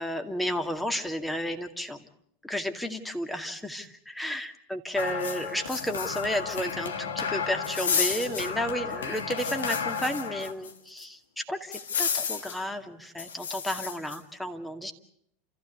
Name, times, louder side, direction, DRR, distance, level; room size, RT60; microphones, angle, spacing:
voice 1, 0.0-2.1 2.4-14.9, equal, 5° left, 5 dB, 2.2 m, -32 dB
sound 1, 5.0-10.7 11.0-11.1 11.7-12.6 13.2-14.2, left 6 dB, 75° left, 1.7 m, -31 dB
29.5 x 15.0 x 8.3 m, 0.76 s
figure-of-eight pair, 85°, 0 cm